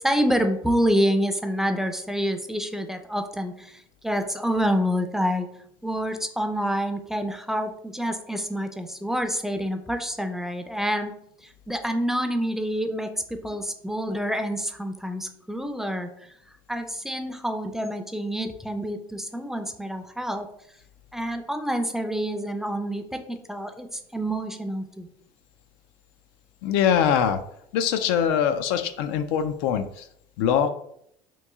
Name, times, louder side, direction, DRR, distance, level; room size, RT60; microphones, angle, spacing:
voice 1, 0.0-3.7 4.0-5.5 5.8-11.1 11.7-16.1 16.7-20.5 21.1-25.1, equal, 5° right, 6 dB, 0.4 m, -27 dB
voice 2, 26.6-27.4 27.7-30.0 30.4-30.7, left 8 dB, 80° left, 9 dB, 0.4 m, -23 dB
3.0 x 2.6 x 3.5 m, 0.71 s
supercardioid pair, 100°, 12 cm